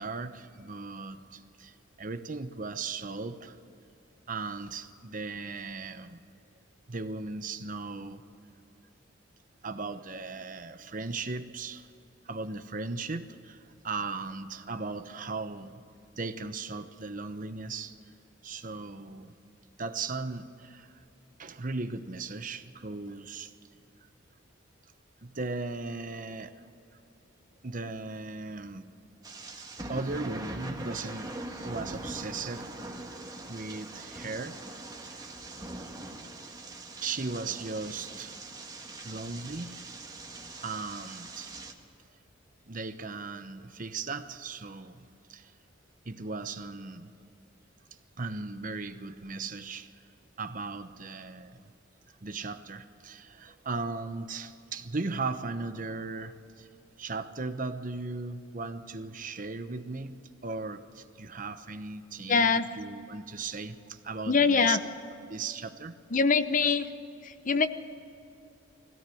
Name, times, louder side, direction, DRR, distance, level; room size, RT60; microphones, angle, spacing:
voice 1, 0.0-3.6 4.3-6.2 6.9-8.3 9.6-11.9 12.2-15.8 16.2-18.0 18.4-19.3 19.8-21.0 21.4-23.5 25.2-26.6 27.6-28.9 29.9-31.3 31.6-32.7 33.5-34.6 35.0-35.2 37.0-38.4 39.0-39.9 40.6-41.5 42.7-45.5 46.0-47.1 48.2-49.9 50.4-51.7 52.1-56.7 57.0-64.8 65.3-65.9, right 3 dB, 45° right, 10 dB, 0.9 m, -37 dB
sound 1, 29.2-41.7, right 2 dB, 20° right, 1.6 m, -42 dB
voice 2, 62.3-62.7 64.3-64.8 66.1-66.9 67.2-67.7, left 5 dB, 40° left, 11 dB, 0.8 m, -23 dB
21.0 x 17.0 x 7.8 m, 2.7 s
head